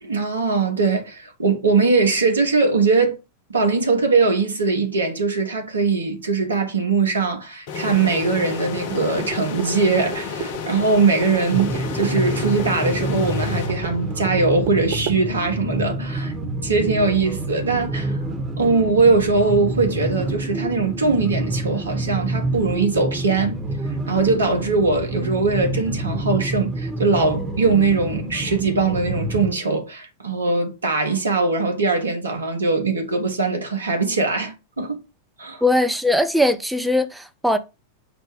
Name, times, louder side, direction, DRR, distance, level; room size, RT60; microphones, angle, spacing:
voice 1, 0.0-3.2 3.5-16.3 16.6-18.2 18.6-23.6 24.0-35.0 35.4-35.6, right 4 dB, 75° right, 1.1 m, -21 dB
sound 1, 7.7-14.3, left 6 dB, 50° left, 0.6 m, -31 dB
sound 2, 8.7-15.2, right 9 dB, 50° right, 0.6 m, -34 dB
sound 3, 11.5-29.5, right 1 dB, 20° right, 1.0 m, -27 dB
voice 2, 35.6-37.6, left 1 dB, 5° right, 0.5 m, -20 dB
5.1 x 2.2 x 4.8 m
figure-of-eight pair, 90°, 0 cm